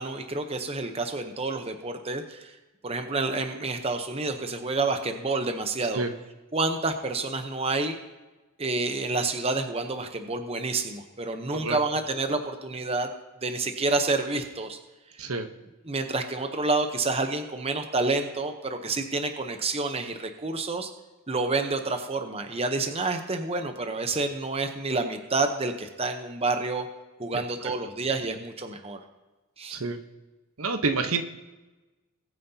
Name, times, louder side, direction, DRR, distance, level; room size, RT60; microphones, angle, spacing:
voice 1, 0.0-2.5 2.8-6.0 6.5-8.0 8.6-13.1 13.4-14.8 15.2-15.3 15.9-20.9 21.3-26.9 27.2-29.0 29.6-29.8, right 3 dB, 25° right, 6 dB, 0.8 m, -29 dB
voice 2, 30.6-31.2, right 4 dB, 70° right, 7 dB, 1.0 m, -28 dB
21.0 x 9.2 x 2.8 m, 1.1 s
head